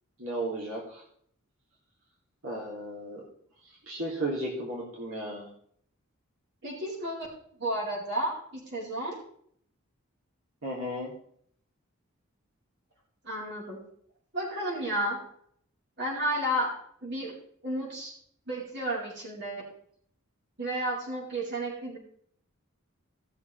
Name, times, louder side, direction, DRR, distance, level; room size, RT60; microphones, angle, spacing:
voice 1, 0.2-1.0 2.4-3.2 3.9-5.5 10.6-11.1, right 1 dB, 85° right, -4 dB, 3.2 m, -34 dB
voice 2, 6.6-7.3 7.6-9.1 13.2-13.8 14.3-15.2 16.0-16.8 17.0-17.3 17.6-18.1 18.5-19.6 20.6-22.0, right 1 dB, 55° right, -5 dB, 4.6 m, -32 dB
18.0 x 7.2 x 3.5 m, 0.65 s
head